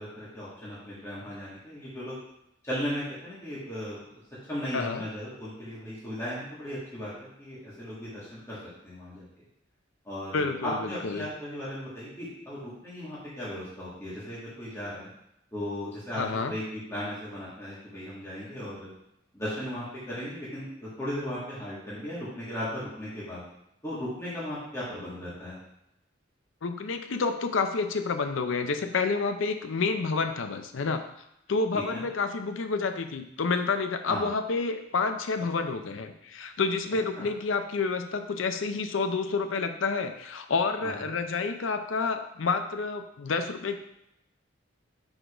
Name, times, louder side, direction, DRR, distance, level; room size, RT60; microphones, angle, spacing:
voice 1, 0.0-2.2 2.6-4.0 4.5-8.6 8.8-9.2 10.0-15.1 15.5-18.9 19.3-23.4 23.8-25.6 31.7-32.0 34.1-34.3 37.1-37.3 40.8-41.1, equal, 15° left, -10 dB, 1.7 m, -36 dB
voice 2, 4.7-5.0 10.3-11.3 16.1-16.5 26.6-31.0 31.5-43.8, left 4 dB, 75° left, 7 dB, 0.5 m, -29 dB
4.9 x 3.9 x 4.9 m, 0.81 s
head